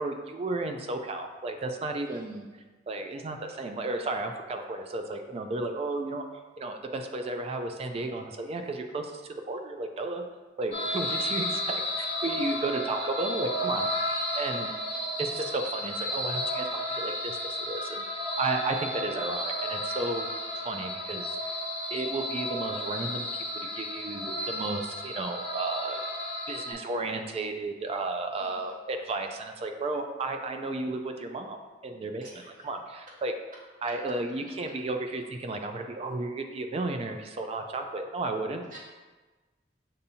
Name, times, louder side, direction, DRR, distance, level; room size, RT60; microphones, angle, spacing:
voice 1, 0.0-2.5 2.9-6.3 6.6-9.2 9.5-10.2 10.6-13.9 14.4-14.7 15.2-18.0 18.4-20.3 20.6-21.6 21.9-23.4 23.7-26.0 26.5-31.6 31.8-32.2 32.6-33.3 33.8-38.8, right 2 dB, 35° right, 5 dB, 0.3 m, -33 dB
voice 2, 2.1-2.4 10.9-11.2 14.9-15.1 28.4-28.8 32.2-32.7 33.8-33.9 34.4-34.7 38.7-38.8, right 1 dB, 50° right, -5 dB, 1.3 m, -51 dB
sound 1, 10.7-26.7, left 1 dB, 40° left, 1.0 m, -33 dB
6.7 x 2.6 x 2.7 m, 1.3 s
head